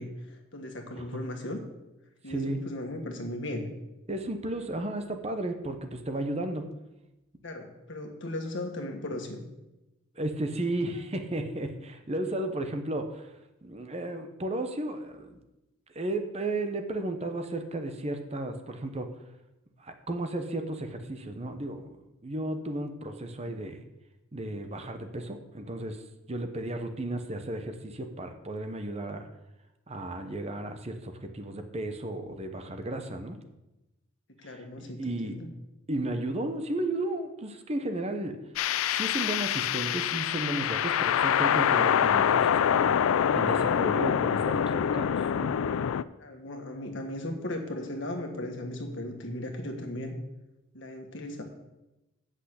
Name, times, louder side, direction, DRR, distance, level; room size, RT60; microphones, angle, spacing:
voice 1, 0.0-1.6 2.2-3.7 7.4-9.4 23.4-23.5 34.4-35.5 46.2-50.1 50.7-51.4, left 1 dB, 60° left, 3 dB, 1.6 m, -37 dB
voice 2, 0.9-1.2 2.3-2.6 4.1-6.7 10.2-13.3 13.6-15.4 15.9-19.1 19.8-21.9 22.2-23.8 24.3-26.0 26.3-29.3 29.9-33.4 34.4-35.4 35.9-38.4 38.9-43.0 43.3-45.5, right 1 dB, 30° right, 6 dB, 0.9 m, -34 dB
sound 1, 38.6-46.0, left 8 dB, 80° left, 0.4 m, -25 dB
8.2 x 6.3 x 8.0 m, 0.97 s
head